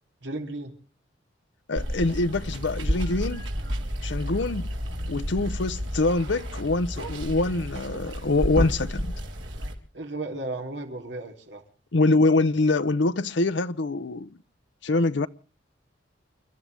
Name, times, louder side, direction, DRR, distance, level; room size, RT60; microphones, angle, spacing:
voice 1, 0.2-0.7 7.0-7.1 9.9-11.6, right 2 dB, 70° right, 3.3 m, -34 dB
voice 2, 1.7-3.4 4.0-4.7 5.1-9.1 11.9-14.3 14.8-15.3, left 2 dB, 70° left, 0.8 m, -24 dB
Water, 1.8-9.7, equal, 85° right, 4.0 m, -31 dB
sound 1, 4.5-7.7, equal, 30° left, 3.8 m, -41 dB
30.0 x 13.0 x 3.4 m
head